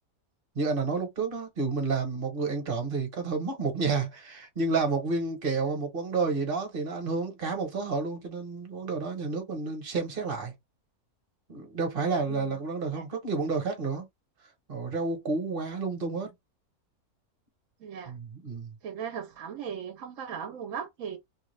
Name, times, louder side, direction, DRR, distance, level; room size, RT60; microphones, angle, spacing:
voice 1, 0.5-10.5 11.5-14.1 14.7-16.3 18.1-18.7, right 4 dB, 40° right, 1.1 m, -30 dB
voice 2, 17.8-18.2 18.8-21.2, right 7 dB, 65° right, 0.9 m, -37 dB
2.8 x 2.3 x 3.1 m
omnidirectional pair, 1.6 m